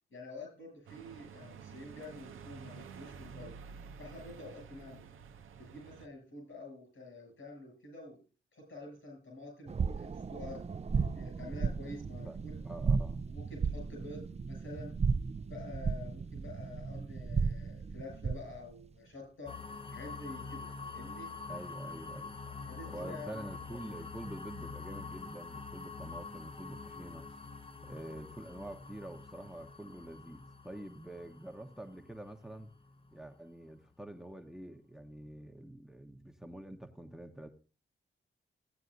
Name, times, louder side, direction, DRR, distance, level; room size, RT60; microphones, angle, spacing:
voice 1, 0.1-3.6 4.0-5.1 5.6-8.2 8.5-12.6 13.3-14.9 15.3-19.5 19.9-21.3 22.7-23.4 23.8-23.9, left 2 dB, 80° left, 1 dB, 7.2 m, -48 dB
sound 1, 0.9-6.1, right 6 dB, 90° right, 0.6 m, -50 dB
sound 2, 9.7-18.6, right 5 dB, 30° right, 0.4 m, -34 dB
voice 2, 12.6-13.2 21.5-22.3 22.9-27.3 27.8-32.7 33.1-37.5, right 1 dB, ahead, 4 dB, 0.9 m, -47 dB
sound 3, 19.5-33.2, left 4 dB, 25° left, 0.7 m, -46 dB
15.5 x 9.0 x 2.6 m, 0.35 s
cardioid pair, 60°, 20 cm